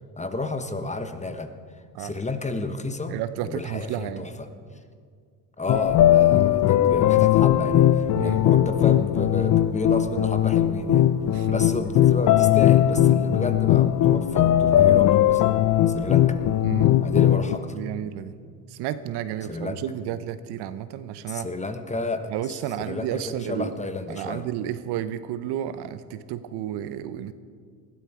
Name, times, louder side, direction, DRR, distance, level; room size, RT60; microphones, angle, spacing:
voice 1, 0.2-1.5 2.0-3.1 3.4-4.5 5.6-11.0 11.5-15.6 15.9-16.4 17.0-17.8 19.4-19.8 21.3-24.5, left 2 dB, 15° left, 8 dB, 1.2 m, -31 dB
voice 2, 3.1-4.3 8.1-8.4 11.3-11.6 16.6-16.9 17.7-18.3 18.7-21.5 22.3-23.8 24.1-27.3, right 11 dB, 60° right, 13 dB, 0.9 m, -32 dB
sound 1, 5.7-17.6, left 12 dB, 40° left, 0.7 m, -19 dB
19.5 x 12.5 x 4.5 m, 2.1 s
hypercardioid pair, 70°, 45 cm